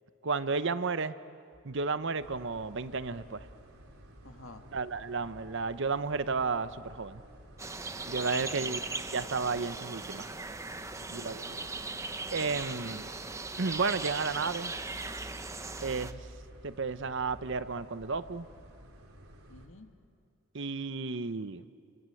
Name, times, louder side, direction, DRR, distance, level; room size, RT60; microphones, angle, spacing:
voice 1, 0.2-1.1 1.6-3.5 4.7-7.2 8.1-8.8 9.1-10.3 11.1-11.4 12.3-13.1 13.6-14.7 15.8-16.2 16.6-18.5 20.5-21.6, right 4 dB, 60° right, 13 dB, 0.8 m, -32 dB
sound 1, 1.5-17.6, left 1 dB, 30° left, 2.1 m, -57 dB
sound 2, 2.2-19.7, right 1 dB, 85° right, 3.4 m, -54 dB
voice 2, 4.2-4.7 8.3-8.9 11.0-11.9 19.5-19.9, left 2 dB, 65° left, 6 dB, 1.9 m, -51 dB
sound 3, 7.6-16.1, right 3 dB, 15° right, 0.8 m, -39 dB
30.0 x 24.5 x 7.8 m, 2.4 s
head